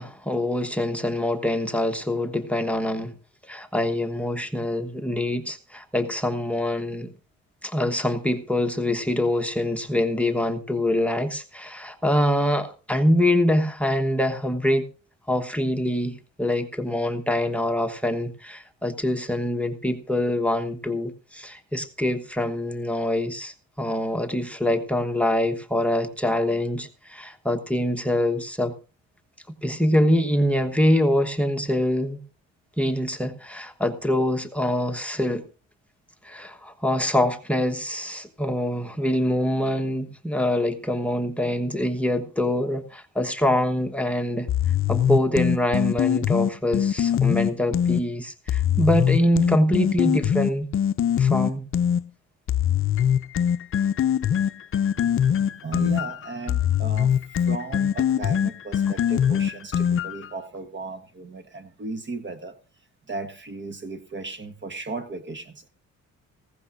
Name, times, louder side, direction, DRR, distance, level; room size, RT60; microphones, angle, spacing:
voice 1, 0.0-3.1 3.5-7.1 7.6-14.9 15.3-28.7 29.6-32.2 32.8-35.5 36.2-44.5 44.9-50.7 51.2-51.7, left 1 dB, 5° left, 1.2 m, -24 dB
sound 1, 44.5-48.0 48.5-52.0 52.5-60.3, left 9 dB, 45° left, 0.6 m, -22 dB
voice 2, 55.0-62.6 63.1-65.7, right 3 dB, 40° right, 1.3 m, -36 dB
18.5 x 16.0 x 2.6 m
cardioid pair, 90°, 30 cm